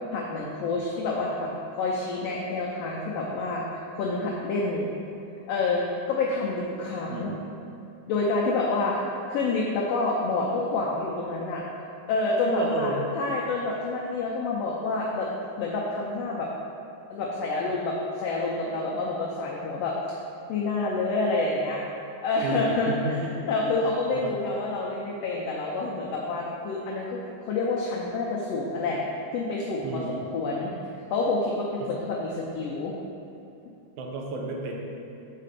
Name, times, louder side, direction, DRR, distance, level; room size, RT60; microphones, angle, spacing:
voice 1, 0.1-1.5 1.8-3.6 3.9-4.9 5.5-7.4 8.1-9.0 9.3-11.6 12.1-15.3 15.6-16.5 17.1-19.9 20.5-21.8 22.2-23.2 23.5-29.0 29.3-30.7 31.1-32.9, left 3 dB, 85° left, -3 dB, 1.4 m, -28 dB
voice 2, 12.5-13.0 22.4-23.5 24.1-24.3 29.8-30.2 31.8-32.0 34.0-34.8, right 2 dB, 75° right, 0 dB, 2.1 m, -32 dB
6.6 x 4.2 x 5.0 m, 2.8 s
omnidirectional pair, 3.6 m